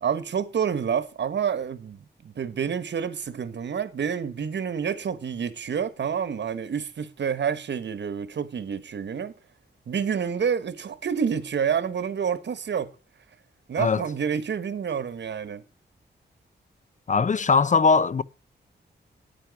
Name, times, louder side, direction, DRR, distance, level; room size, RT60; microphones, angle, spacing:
voice 1, 0.0-9.3 9.9-12.9 13.7-15.6, right 7 dB, 75° right, 1.2 m, -28 dB
voice 2, 17.1-18.2, left 5 dB, 45° left, 0.6 m, -20 dB
10.0 x 9.2 x 4.7 m
wide cardioid pair, 95°, 18 cm